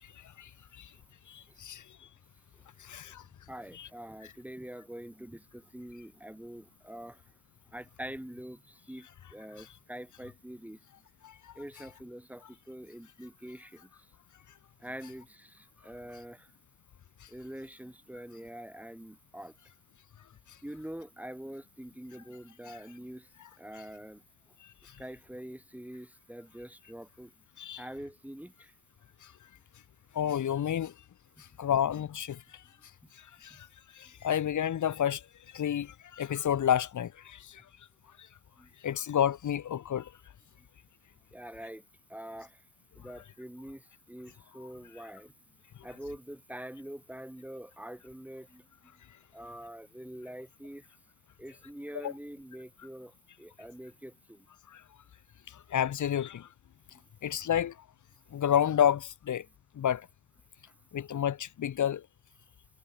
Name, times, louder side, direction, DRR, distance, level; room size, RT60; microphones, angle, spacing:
voice 1, 1.3-1.8 2.8-3.2 3.7-3.9 9.6-9.7 11.2-11.5 22.7-22.8 27.6-27.8 30.1-30.9 31.6-32.6 33.2-33.7 33.9-35.2 35.5-37.6 38.8-40.1 52.0-52.1 54.7-54.8 55.5-56.5 57.2-57.7 58.3-59.4 59.8-60.1 60.9-62.0, left 9 dB, 80° left, 1.1 m, -30 dB
voice 2, 3.5-7.2 7.7-10.8 11.6-14.1 14.8-16.5 17.3-19.5 20.6-23.3 23.6-24.2 25.0-27.3 27.8-28.7 33.5-33.6 38.6-38.7 41.3-41.8 42.1-42.6 43.0-45.3 45.8-48.9 49.3-50.8 51.4-54.5 56.9-57.0, equal, 5° right, 3.9 m, -45 dB
cardioid pair, 90°, 30 cm